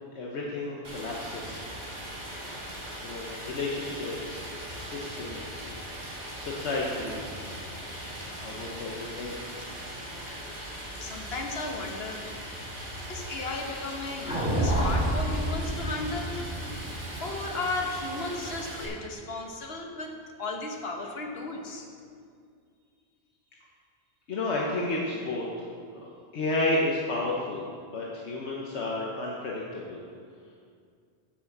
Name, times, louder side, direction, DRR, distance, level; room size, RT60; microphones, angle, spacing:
voice 1, 0.1-1.6 3.0-4.5 4.8-5.7 6.0-7.3 8.4-9.4 24.3-25.4 25.9-30.0, left 2 dB, 85° left, -3 dB, 1.3 m, -32 dB
Stream, 0.8-18.9, equal, 40° right, 2.2 m, -40 dB
voice 2, 11.0-12.3 13.1-16.6 17.2-20.1 20.4-21.9, left 2 dB, 65° left, 2 dB, 1.4 m, -35 dB
sound 1, 14.3-18.5, right 1 dB, 5° right, 2.6 m, -29 dB
8.6 x 6.2 x 7.2 m, 2.2 s
omnidirectional pair, 1.1 m